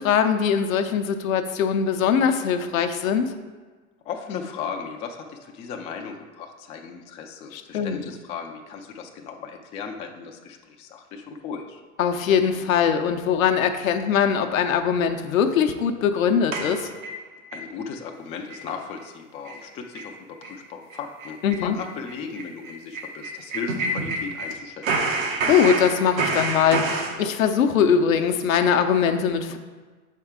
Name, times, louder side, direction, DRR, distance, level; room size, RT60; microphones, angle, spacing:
voice 1, 0.0-3.3 7.5-8.0 12.0-16.9 21.4-21.8 25.4-29.6, left 7 dB, 75° left, 6 dB, 0.7 m, -21 dB
voice 2, 4.1-11.8 17.5-20.1 20.4-21.4 21.6-25.0, left 6 dB, 15° left, 2 dB, 0.3 m, -36 dB
sound 1, 16.5-17.6 18.0-18.1 18.5-18.7 19.0-19.1 19.4-19.6 19.9-20.1 20.4-20.6 20.9-24.5 24.8-27.1, right 3 dB, 70° right, 1.1 m, -28 dB
6.9 x 4.5 x 3.6 m, 1.4 s
hypercardioid pair, 100°, 41 cm